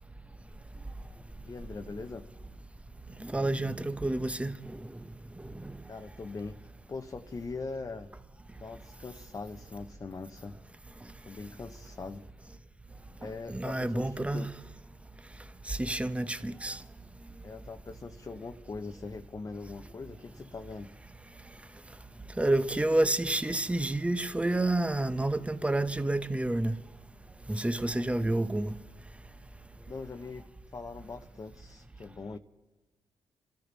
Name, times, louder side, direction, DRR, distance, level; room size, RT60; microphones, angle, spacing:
voice 1, 1.4-2.3 5.9-8.1 8.6-10.6 11.3-12.3 13.2-14.5 17.4-20.9 27.8-28.3 29.9-32.4, left 4 dB, 35° left, 1.0 m, -42 dB
voice 2, 3.2-4.8 5.6-5.7 13.5-14.5 15.7-16.8 22.4-26.8 27.5-28.8, right 2 dB, 10° right, 0.9 m, -29 dB
27.0 x 13.5 x 4.1 m
cardioid pair, 65°, 10 cm